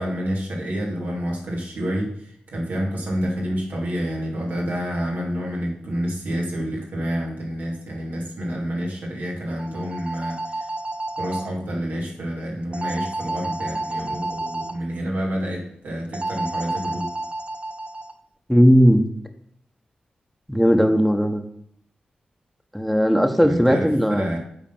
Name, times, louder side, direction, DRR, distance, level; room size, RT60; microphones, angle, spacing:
voice 1, 0.0-10.6 11.2-17.1 23.4-24.4, equal, 80° right, -2 dB, 2.8 m, -28 dB
sound 1, 9.5-11.5 12.7-14.7 16.1-18.1, right 2 dB, 40° right, 1.1 m, -30 dB
voice 2, 18.5-19.0 20.5-21.4 22.7-24.4, equal, ahead, 6 dB, 1.5 m, -17 dB
8.8 x 4.2 x 7.3 m, 0.70 s
supercardioid pair, 40°, 3 cm